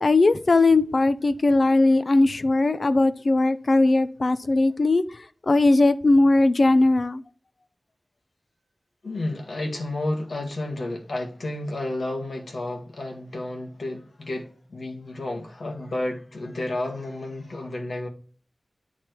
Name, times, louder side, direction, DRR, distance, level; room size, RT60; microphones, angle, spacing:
voice 1, 0.0-5.0 5.5-7.2, left 2 dB, 55° left, 0.5 m, -19 dB
voice 2, 9.0-18.1, left 1 dB, 80° left, 1.7 m, -31 dB
8.8 x 3.3 x 4.4 m
wide cardioid pair, 80°, 0 cm